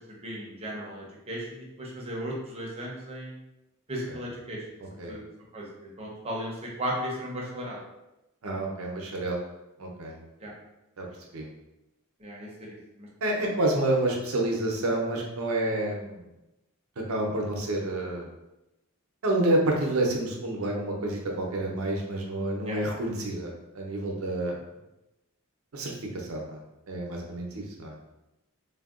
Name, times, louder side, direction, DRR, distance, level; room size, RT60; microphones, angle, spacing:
voice 1, 0.2-3.4 3.9-4.6 5.1-5.2 5.5-7.8 10.4-10.5 12.2-13.4 22.7-22.9, equal, 30° right, -3 dB, 0.7 m, -36 dB
voice 2, 8.4-9.4 9.8-10.2 11.0-11.1 11.3-11.5 13.2-16.3 17.1-18.3 19.2-24.5 25.7-26.6 26.9-27.9, right 1 dB, 70° right, -1 dB, 0.6 m, -29 dB
3.4 x 2.2 x 2.4 m, 0.94 s
head